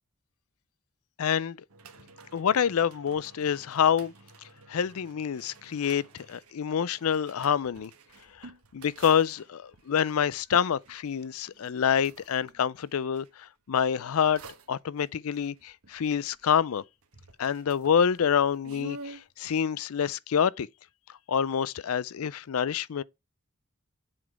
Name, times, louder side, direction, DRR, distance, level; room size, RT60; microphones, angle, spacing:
voice 1, 1.2-1.6 2.3-4.1 4.7-7.9 8.4-14.4 14.7-16.8 17.4-20.7 21.3-23.0, left 7 dB, 70° left, 0.4 m, -27 dB
sound 1, 1.7-13.3 13.9-16.8 17.0-19.3, right 3 dB, 80° right, 1.4 m, -51 dB
7.6 x 4.1 x 4.5 m
head